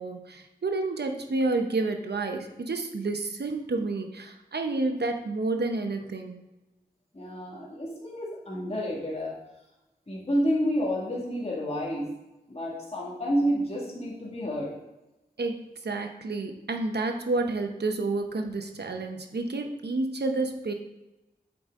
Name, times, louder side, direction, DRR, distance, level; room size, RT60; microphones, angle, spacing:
voice 1, 0.0-6.4 15.4-20.7, right 3 dB, 90° right, 5 dB, 0.8 m, -30 dB
voice 2, 7.1-9.3 10.1-12.1 12.5-14.7, equal, 40° left, -5 dB, 1.9 m, -29 dB
7.8 x 4.9 x 3.7 m, 0.98 s
wide cardioid pair, 60°, 17 cm